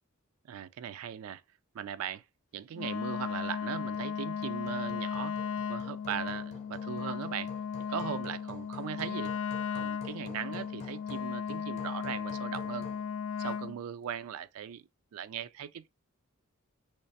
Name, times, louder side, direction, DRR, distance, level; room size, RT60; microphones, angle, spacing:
voice 1, 0.5-1.4 1.7-2.2 2.5-5.4 5.7-7.5 7.9-9.3 9.7-12.9 13.4-15.9, right 9 dB, 90° right, 0.3 m, -39 dB
Wind instrument woodwind instrument, 2.7-13.8, left 7 dB, 65° left, 0.3 m, -36 dB
Hammer, 3.5-13.1, left 2 dB, 30° left, 0.6 m, -51 dB
3.2 x 3.2 x 2.7 m
head